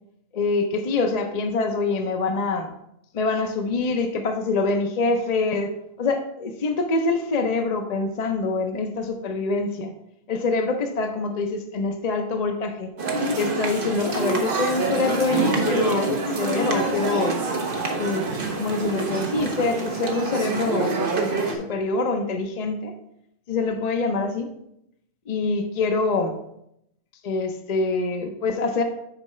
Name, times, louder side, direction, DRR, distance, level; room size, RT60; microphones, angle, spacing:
voice 1, 0.3-2.7 3.1-9.9 10.3-12.9 13.4-17.4 18.0-18.3 18.6-22.9 23.5-24.5 25.3-26.4 27.2-28.8, left 3 dB, 50° left, 5 dB, 0.5 m, -25 dB
sound 1, 13.0-21.5, right 3 dB, 45° right, 1.1 m, -26 dB
6.8 x 4.6 x 4.2 m, 0.79 s
omnidirectional pair, 1.3 m